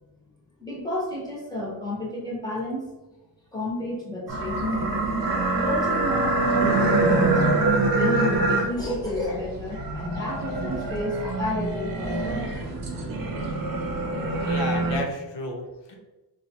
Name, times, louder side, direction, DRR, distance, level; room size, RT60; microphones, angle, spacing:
voice 1, 0.6-2.9 3.5-5.2 5.5-7.4 7.8-12.4, left 1 dB, 10° left, -5 dB, 0.9 m, -31 dB
sound 1, 4.3-15.0, right 2 dB, 55° right, 0.8 m, -25 dB
voice 2, 14.4-16.0, left 1 dB, 80° left, 1 dB, 0.8 m, -32 dB
4.4 x 2.3 x 2.8 m, 1.1 s
wide cardioid pair, 175°, 42 cm